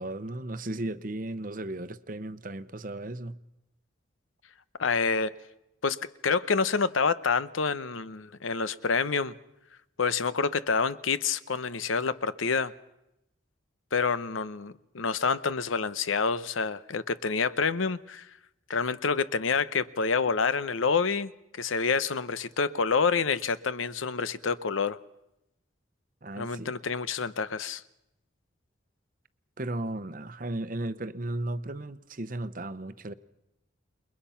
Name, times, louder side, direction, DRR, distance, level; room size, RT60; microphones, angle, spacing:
voice 1, 0.0-3.4 26.2-26.7 29.6-33.1, right 1 dB, 45° right, 13 dB, 0.8 m, -35 dB
voice 2, 4.8-5.3 5.8-6.0 6.2-9.3 10.0-12.7 13.9-18.3 18.7-21.3 21.6-25.0 26.4-27.8, left 5 dB, 90° left, 15 dB, 0.8 m, -27 dB
28.5 x 21.5 x 5.8 m, 0.88 s
head